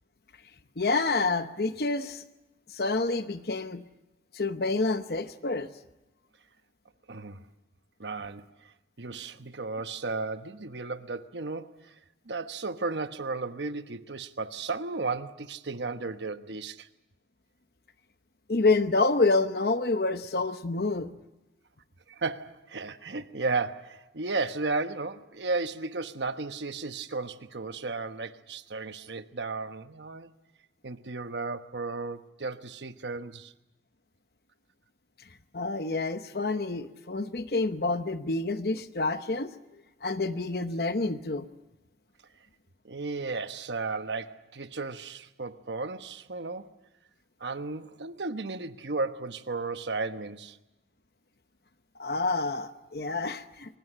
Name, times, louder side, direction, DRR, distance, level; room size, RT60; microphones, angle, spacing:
voice 1, 0.8-2.2 2.7-3.8 4.3-5.7 18.5-21.1 35.5-39.5 40.0-41.5 52.0-53.8, left 3 dB, 65° left, 0.9 m, -28 dB
voice 2, 7.1-7.4 8.0-8.4 9.0-11.9 12.3-16.9 22.1-30.3 30.8-33.5 42.8-46.7 47.4-50.6, right 3 dB, 90° right, 1.1 m, -34 dB
23.5 x 19.5 x 9.9 m
head